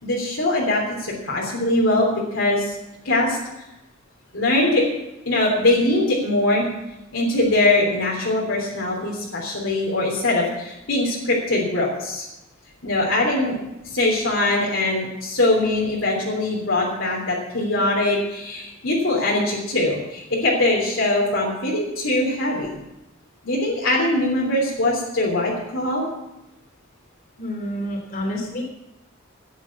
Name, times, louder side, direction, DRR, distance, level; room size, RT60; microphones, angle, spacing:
voice 1, 0.0-2.7 3.0-3.4 4.3-4.8 5.2-6.7 7.1-12.2 12.8-13.6 13.8-22.7 23.4-26.1, left 2 dB, 70° left, -3 dB, 3.2 m, -22 dB
voice 2, 27.4-28.6, equal, 45° left, 0 dB, 3.0 m, -28 dB
11.5 x 9.7 x 7.2 m, 0.94 s
head